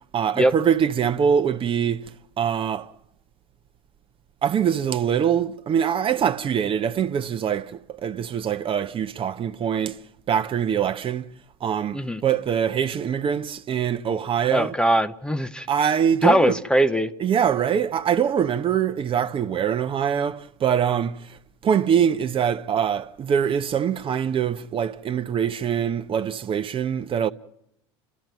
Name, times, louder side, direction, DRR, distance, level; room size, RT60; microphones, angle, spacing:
voice 1, 0.1-2.1 2.4-2.9 4.4-10.0 10.3-11.3 11.6-14.7 15.7-16.6 17.2-21.2 21.6-27.3, right 8 dB, 40° right, 0.9 m, -23 dB
voice 2, 14.5-15.7 16.2-17.1, equal, 5° left, 0.9 m, -21 dB
29.0 x 14.0 x 9.3 m
hypercardioid pair, 80°, 14 cm